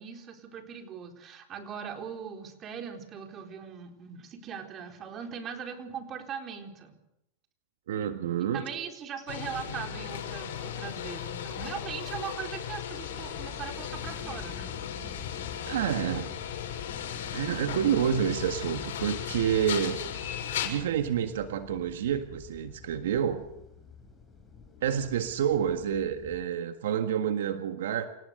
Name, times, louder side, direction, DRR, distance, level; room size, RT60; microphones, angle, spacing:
voice 1, 0.0-6.9 8.4-14.7, right 7 dB, 30° right, 4 dB, 4.1 m, -40 dB
voice 2, 7.9-8.6 15.6-16.3 17.3-20.0 20.6-23.5 24.8-28.1, right 9 dB, 80° right, 8 dB, 1.7 m, -28 dB
sound 1, 9.3-20.7, left 9 dB, 80° left, 6.8 m, -36 dB
sound 2, 13.0-26.4, left 5 dB, 10° left, 7.4 m, -47 dB
28.0 x 17.5 x 6.8 m, 0.84 s
hypercardioid pair, 125°, 0 cm